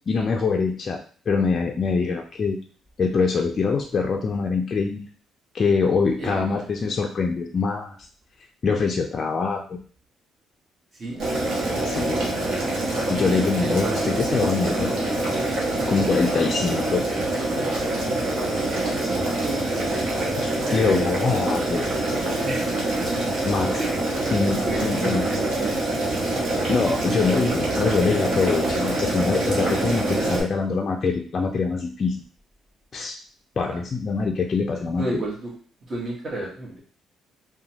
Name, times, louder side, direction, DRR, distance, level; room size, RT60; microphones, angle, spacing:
voice 1, 0.1-1.0 1.3-2.6 3.0-5.0 5.5-8.0 8.6-9.8 11.8-12.2 13.1-14.9 15.9-17.0 20.4-21.9 23.4-23.8 24.3-25.3 26.7-32.2 32.9-33.2 33.6-35.2, left 4 dB, 40° left, 1 dB, 0.3 m, -24 dB
voice 2, 6.2-6.9 10.9-12.3 13.2-15.6 18.3-20.0 20.7-21.1 22.4-22.8 23.8-26.1 27.0-27.5 33.6-33.8 35.0-35.5 35.9-36.8, right 2 dB, 40° right, -3 dB, 1.1 m, -33 dB
Boiling, 11.2-30.4, right 2 dB, 70° right, 0.9 m, -25 dB
2.9 x 2.1 x 2.7 m, 0.43 s
cardioid pair, 100°, 0 cm